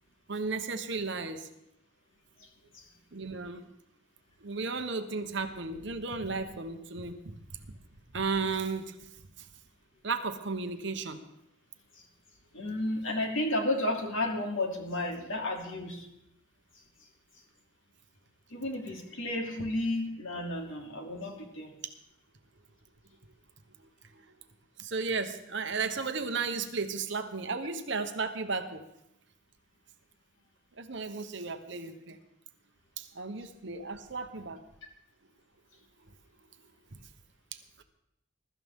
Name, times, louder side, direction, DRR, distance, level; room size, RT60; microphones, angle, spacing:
voice 1, 0.3-1.5 3.1-3.6 4.4-7.4 8.1-9.1 9.4-9.5 10.0-11.2 24.2-24.3 24.8-28.8 30.8-32.2 33.0-34.6, right 4 dB, 55° right, 7 dB, 1.1 m, -34 dB
voice 2, 12.5-16.1 18.5-21.7, left 1 dB, 70° left, 1 dB, 2.8 m, -32 dB
22.0 x 13.0 x 3.7 m, 0.82 s
head